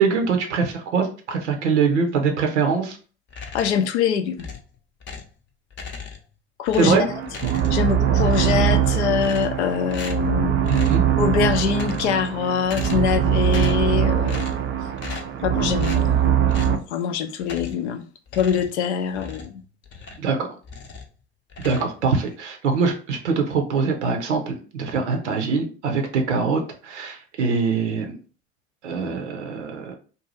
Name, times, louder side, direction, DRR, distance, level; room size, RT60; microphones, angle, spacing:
voice 1, 0.0-3.0 6.8-7.0 10.7-11.1 20.2-20.5 21.6-28.2 28.8-30.0, right 5 dB, 80° right, 0.6 m, -23 dB
sound 1, 3.3-3.9 4.4-5.4 5.7-6.3 6.7-7.9 8.2-8.8 9.2-9.6 9.9-10.3 10.6-11.1 11.6-12.3 12.6-13.2 13.4-13.9 14.3-14.7 15.0-15.4 15.8-16.1 16.5-16.8 17.4-17.9 18.3-20.3 20.6-21.1 21.5-22.3, left 5 dB, 35° left, 0.6 m, -37 dB
voice 2, 3.5-4.5 6.6-7.1 7.7-10.5 11.2-14.6 15.4-16.3 16.6-18.0 18.3-19.6, left 7 dB, 70° left, 0.5 m, -24 dB
sound 2, 6.8-16.8, right 9 dB, 35° right, 0.4 m, -22 dB
2.6 x 2.2 x 3.0 m
figure-of-eight pair, 65°, 35 cm